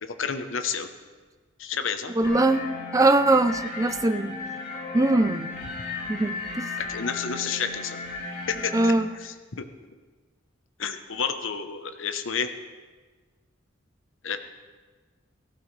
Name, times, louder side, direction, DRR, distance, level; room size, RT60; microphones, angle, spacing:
voice 1, 0.0-0.9 1.6-2.1 6.8-8.0 8.5-9.7 10.8-12.5 14.2-14.4, left 6 dB, 80° left, 8 dB, 0.9 m, -30 dB
sound 1, 2.2-8.9, left 4 dB, 45° left, 3.1 m, -35 dB
voice 2, 2.2-4.4 4.9-5.5 6.1-6.7 8.7-9.1, right 2 dB, 15° right, 11 dB, 0.5 m, -22 dB
17.5 x 15.0 x 3.3 m, 1.4 s
head